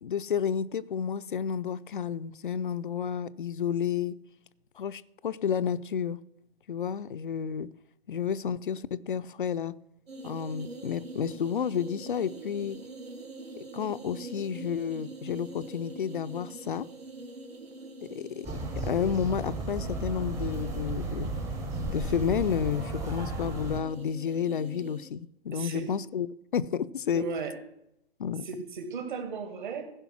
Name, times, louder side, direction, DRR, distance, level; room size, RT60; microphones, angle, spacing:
voice 1, 0.0-4.2 4.8-6.2 6.7-7.7 8.1-9.7 10.2-12.8 13.7-16.9 18.0-18.5 18.8-21.3 21.9-26.3 26.5-27.2 28.2-28.5, left 8 dB, 55° left, 0.5 m, -31 dB
sound 1, 10.1-25.1, right 2 dB, 70° right, 1.6 m, -45 dB
sound 2, 18.4-23.8, right 2 dB, 10° right, 0.8 m, -34 dB
voice 2, 25.5-25.9 27.1-27.6 28.5-29.9, right 5 dB, 50° right, 1.9 m, -36 dB
15.5 x 5.2 x 5.9 m
figure-of-eight pair, 125°, 31 cm